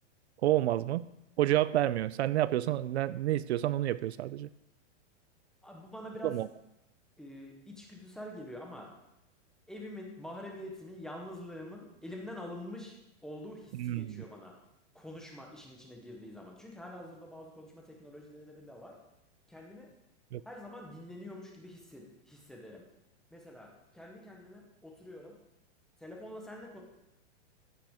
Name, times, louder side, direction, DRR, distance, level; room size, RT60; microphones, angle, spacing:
voice 1, 0.4-1.1 1.4-4.5 6.2-6.5 13.8-14.2 20.3-20.4, right 14 dB, 65° right, 17 dB, 0.5 m, -29 dB
voice 2, 5.6-6.3 7.2-8.9 9.7-14.5 14.9-19.0 19.5-19.9 20.4-22.8 23.3-25.4 26.0-26.8, left 1 dB, ahead, -1 dB, 0.8 m, -46 dB
14.5 x 7.5 x 3.6 m, 0.88 s
supercardioid pair, 170°, 36 cm